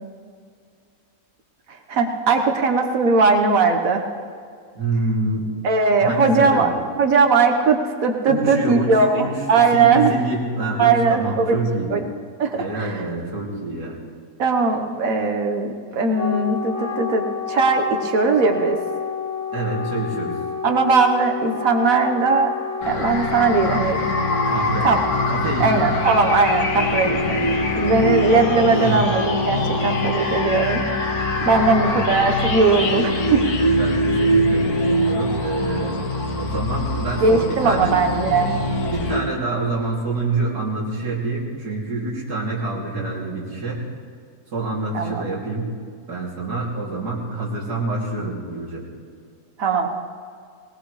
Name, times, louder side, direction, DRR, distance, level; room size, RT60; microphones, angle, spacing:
voice 1, 1.7-4.0 5.6-6.7 7.0-10.1 10.8-11.6 11.9-12.0 12.4-13.1 14.4-17.2 17.5-18.8 20.6-22.5 22.8-24.0 24.8-25.0 25.6-27.4 27.7-31.1 31.4-33.4 37.2-38.5 44.9-45.2 49.6-49.9, right 4 dB, 60° right, 4 dB, 1.6 m, -19 dB
voice 2, 4.7-5.5 6.0-6.7 8.2-11.9 12.5-14.0 19.5-20.4 24.5-24.9 25.3-25.7 26.8-27.7 28.7-29.2 29.5-29.9 31.4-32.0 33.7-35.9 36.4-37.9 38.4-43.8 44.5-45.7 46.1-48.8, right 2 dB, 80° right, -4 dB, 3.3 m, -27 dB
Wind instrument woodwind instrument, 15.9-33.4, left 6 dB, 15° left, 0.9 m, -30 dB
sound 1, 22.8-39.2, left 1 dB, 70° left, 1.9 m, -23 dB
20.5 x 19.0 x 3.2 m, 2.2 s
omnidirectional pair, 1.7 m